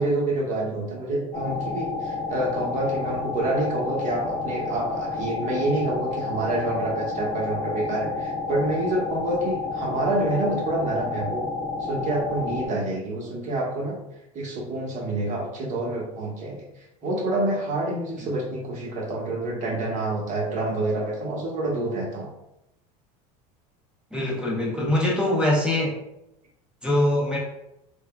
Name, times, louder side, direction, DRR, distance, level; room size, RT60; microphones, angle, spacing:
voice 1, 0.0-11.5 11.8-14.0 14.3-16.6 17.0-22.3, right 2 dB, 40° right, -3 dB, 1.1 m, -27 dB
sound 1, 1.3-12.7, left 3 dB, 35° left, 0.8 m, -30 dB
voice 2, 24.1-25.9 26.8-27.4, left 1 dB, 5° right, -4 dB, 0.7 m, -23 dB
3.4 x 2.2 x 2.2 m, 0.86 s
supercardioid pair, 110°, 19 cm